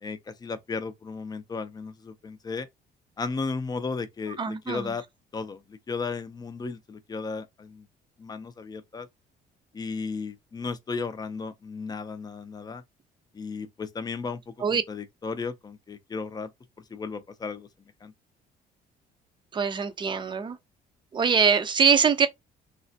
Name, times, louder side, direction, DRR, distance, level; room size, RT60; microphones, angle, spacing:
voice 1, 0.0-2.7 3.2-5.0 5.3-7.9 8.2-9.1 9.7-12.8 13.3-14.5 14.9-16.5 16.9-17.7 18.0-18.1, left 4 dB, 25° left, 0.5 m, -34 dB
voice 2, 4.4-4.9 14.6-14.8 19.5-20.6 21.1-22.3, right 6 dB, 30° right, 0.5 m, -23 dB
3.2 x 2.0 x 2.7 m
cardioid pair, 110°, 17 cm